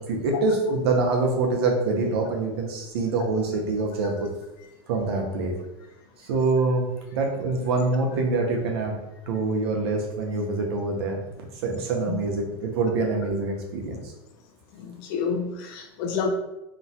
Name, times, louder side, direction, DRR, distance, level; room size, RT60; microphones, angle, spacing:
voice 1, 0.0-4.3 4.9-5.6 6.2-9.0 9.3-11.2 11.6-14.0, right 3 dB, 80° right, 1 dB, 0.7 m, -25 dB
voice 2, 14.8-16.3, left 6 dB, 60° left, 4 dB, 0.5 m, -29 dB
3.0 x 2.1 x 2.7 m, 0.93 s
supercardioid pair, 140°, 13 cm